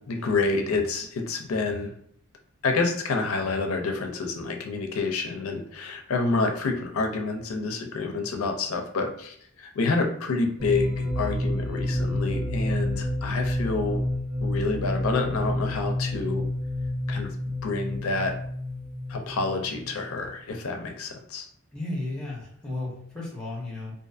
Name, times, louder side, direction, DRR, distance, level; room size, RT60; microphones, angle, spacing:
voice 1, 0.1-1.9 2.6-14.0 14.4-16.4 17.1-17.3 17.6-18.3 19.1-21.5, left 3 dB, 70° left, 4 dB, 0.5 m, -28 dB
sound 1, 10.6-20.2, left 1 dB, 80° right, 1.0 m, -29 dB
voice 2, 21.7-23.9, left 2 dB, 5° left, -5 dB, 0.9 m, -34 dB
2.5 x 2.5 x 2.4 m, 0.66 s
head